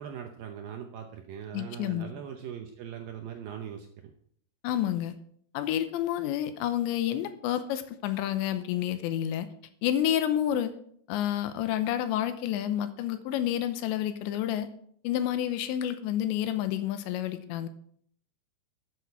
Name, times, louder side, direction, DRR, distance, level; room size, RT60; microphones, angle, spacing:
voice 1, 0.0-3.9, right 8 dB, 75° right, 4 dB, 2.1 m, -40 dB
voice 2, 1.5-2.1 4.6-5.1 5.5-9.5 9.8-10.7 11.1-14.7 15.0-17.7, left 11 dB, 90° left, 11 dB, 3.1 m, -29 dB
13.0 x 8.4 x 4.7 m, 0.65 s
omnidirectional pair, 5.1 m